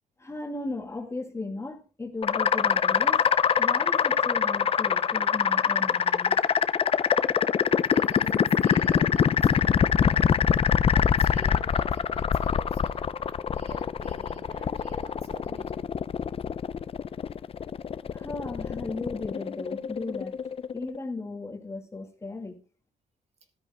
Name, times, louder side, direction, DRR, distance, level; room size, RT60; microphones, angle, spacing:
voice 1, 0.2-3.3 3.6-6.3 7.0-7.3 18.1-20.4 20.7-22.6, left 3 dB, 20° left, 2.1 m, -36 dB
sound 1, 2.2-21.0, left 7 dB, 40° left, 0.5 m, -24 dB
voice 2, 7.9-10.6 10.9-13.2 13.5-15.9, right 2 dB, 45° right, 2.6 m, -47 dB
14.0 x 13.0 x 2.2 m
cardioid pair, 95°, 15 cm